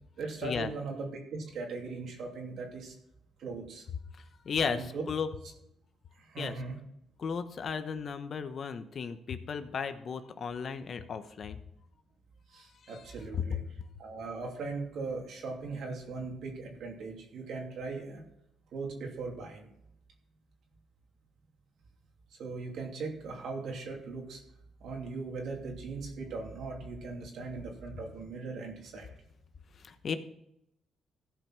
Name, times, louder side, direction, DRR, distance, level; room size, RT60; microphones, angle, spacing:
voice 1, 0.2-2.9 3.4-3.9 4.6-5.0 6.2-6.8 12.5-13.6 14.0-18.2 18.7-19.7 22.4-24.4 24.8-29.1, right 3 dB, 70° right, 1 dB, 2.8 m, -39 dB
voice 2, 4.1-5.3 6.4-6.6 7.2-11.6 12.8-13.0 13.4-13.6 29.8-30.2, left 6 dB, 50° left, 10 dB, 0.9 m, -35 dB
15.0 x 5.5 x 6.0 m, 0.80 s
cardioid pair, 90°, 0 cm